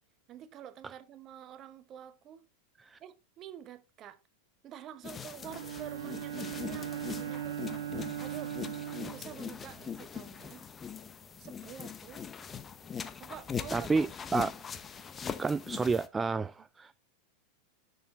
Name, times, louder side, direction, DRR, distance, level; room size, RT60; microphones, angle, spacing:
voice 1, 0.3-2.5 3.0-4.2 4.6-7.6 8.2-8.6 9.1-10.6 11.4-12.2 13.2-14.1, right 10 dB, 35° right, 1.0 m, -48 dB
sound 1, 5.0-16.1, left 7 dB, 25° left, 0.8 m, -41 dB
Bowed string instrument, 5.4-10.0, right 10 dB, 70° right, 0.9 m, -39 dB
voice 2, 13.7-14.1 14.3-14.5 15.4-17.0, right 4 dB, 15° right, 0.3 m, -30 dB
11.0 x 6.6 x 3.0 m
hypercardioid pair, 95°, 0 cm